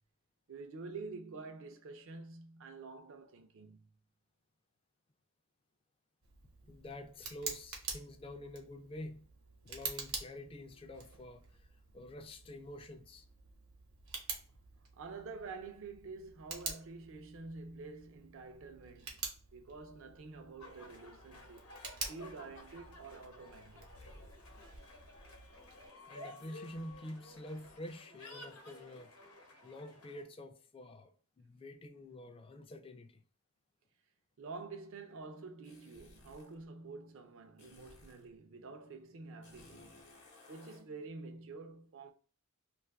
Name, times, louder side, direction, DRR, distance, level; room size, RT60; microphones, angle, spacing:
voice 1, 0.5-3.9 15.0-23.9 34.4-40.0 40.5-42.1, right 4 dB, 65° right, 0.5 m, -48 dB
Tick, 6.2-25.9, right 5 dB, 80° right, 1.0 m, -48 dB
voice 2, 6.6-9.3 9.6-13.3 26.1-29.1 29.6-33.2, left 1 dB, 25° left, 0.3 m, -48 dB
sound 1, 20.6-30.2, left 2 dB, 90° left, 0.9 m, -54 dB
sound 2, 35.6-36.6 37.6-38.3 39.4-40.9, left 2 dB, 55° left, 0.9 m, -59 dB
2.6 x 2.4 x 3.3 m
head